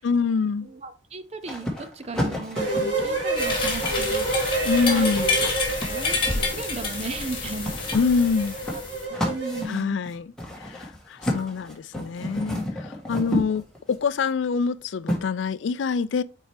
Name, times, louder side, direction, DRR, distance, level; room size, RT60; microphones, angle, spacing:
voice 1, 0.0-0.7 4.6-5.3 7.9-8.6 9.7-10.3 10.6-16.2, left 5 dB, 80° left, 0.4 m, -25 dB
voice 2, 0.6-4.3 4.9-5.1 5.9-8.0 9.0-10.0, right 3 dB, 35° right, 0.6 m, -36 dB
sound 1, 1.4-6.8 7.7-14.0 15.1-15.2, equal, 5° left, 1.5 m, -32 dB
sound 2, 2.5-9.6, right 3 dB, 70° right, 2.7 m, -29 dB
sound 3, 3.4-9.0, left 3 dB, 25° left, 1.8 m, -28 dB
6.4 x 4.5 x 3.4 m
head